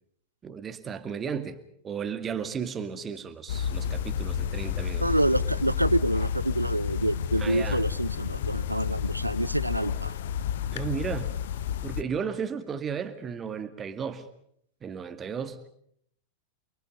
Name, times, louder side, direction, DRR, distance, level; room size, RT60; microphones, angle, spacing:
voice 1, 0.4-1.6 1.8-5.0 7.4-7.8 10.7-11.3 11.8-14.3 14.8-15.7, right 7 dB, 20° right, 9 dB, 2.0 m, -34 dB
sound 1, 3.5-12.0, left 8 dB, 55° left, 1.1 m, -30 dB
voice 2, 5.0-10.2, right 1 dB, 85° right, 18 dB, 0.9 m, -27 dB
29.5 x 23.5 x 5.4 m, 0.68 s
figure-of-eight pair, 90°, 0 cm